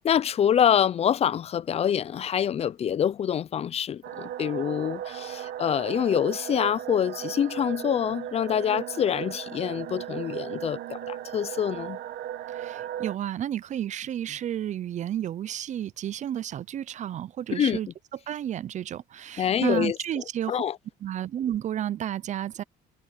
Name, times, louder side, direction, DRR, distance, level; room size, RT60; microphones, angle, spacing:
voice 1, 0.0-12.0 17.5-17.8 19.4-20.0 20.5-20.8, left 9 dB, 35° left, 0.5 m, -26 dB
sound 1, 4.0-13.2, right 11 dB, 70° right, 1.6 m, -36 dB
voice 2, 12.5-17.9 18.3-20.6 21.0-22.6, right 10 dB, 45° right, 0.6 m, -31 dB
cardioid pair, 110°, 17 cm